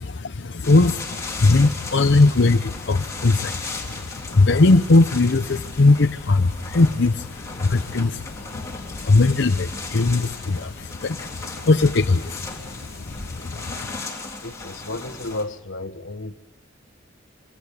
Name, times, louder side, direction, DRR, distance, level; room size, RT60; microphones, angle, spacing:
voice 1, 0.0-14.1, left 3 dB, 65° left, 0.7 m, -20 dB
sound 1, 0.6-15.4, left 3 dB, 15° left, 3.4 m, -36 dB
voice 2, 14.4-16.3, left 2 dB, 90° left, 1.3 m, -32 dB
24.5 x 17.5 x 8.2 m
head